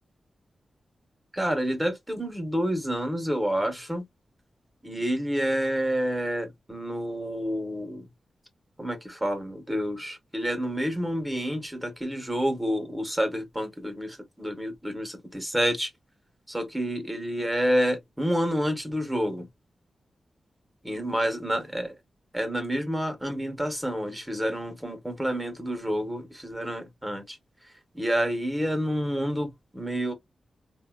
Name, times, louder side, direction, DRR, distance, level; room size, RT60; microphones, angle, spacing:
voice 1, 1.3-4.0 4.8-8.1 8.8-15.9 16.5-19.5 20.8-21.9 22.3-27.4 27.9-30.1, equal, 5° right, 0.8 m, -29 dB
3.6 x 2.1 x 2.3 m
wide cardioid pair, 160°, 0 cm